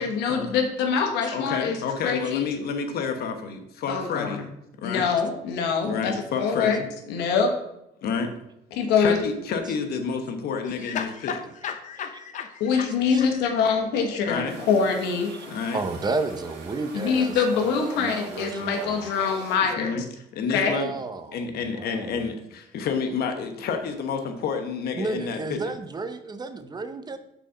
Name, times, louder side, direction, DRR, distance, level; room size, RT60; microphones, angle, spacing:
voice 1, 0.0-1.8 2.0-2.5 3.9-4.4 4.8-6.8 7.1-7.5 8.7-9.2 12.6-15.3 16.9-20.0 20.5-20.7, left 6 dB, 90° left, 4 dB, 1.2 m, -24 dB
voice 2, 1.3-4.5 4.8-5.1 5.8-6.9 8.0-8.3 9.0-11.3 14.2-14.5 15.5-15.8 19.8-20.0 20.3-20.9 21.3-25.7, left 5 dB, 65° left, 6 dB, 1.1 m, -29 dB
voice 3, 10.6-12.9 13.2-13.3, left 7 dB, 50° left, 6 dB, 0.7 m, -34 dB
voice 4, 12.7-13.2 14.0-14.1 15.3-19.1 20.6-22.3 25.0-27.2, right 3 dB, 25° right, 9 dB, 0.6 m, -33 dB
sound 1, 14.5-19.6, right 4 dB, 90° right, 1.6 m, -44 dB
6.1 x 4.3 x 5.6 m, 0.82 s
cardioid pair, 110°, 17 cm